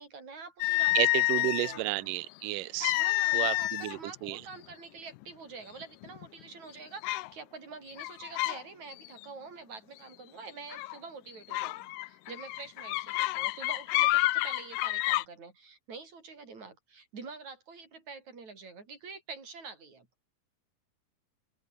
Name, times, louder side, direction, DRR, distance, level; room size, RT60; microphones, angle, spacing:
voice 1, 0.0-2.0 2.9-20.1, right 4 dB, 60° right, 6.7 m, -46 dB
sound 1, 0.6-1.8 2.8-4.0 4.3-4.5 5.2-5.3 5.8-6.3 7.0-7.3 7.9-8.6 8.9-9.2 10.7-11.0 11.5-15.2, left 19 dB, 85° left, 2.2 m, -29 dB
voice 2, 0.9-2.9 3.3-4.4, right 20 dB, 85° right, 2.2 m, -32 dB
omnidirectional pair, 3.7 m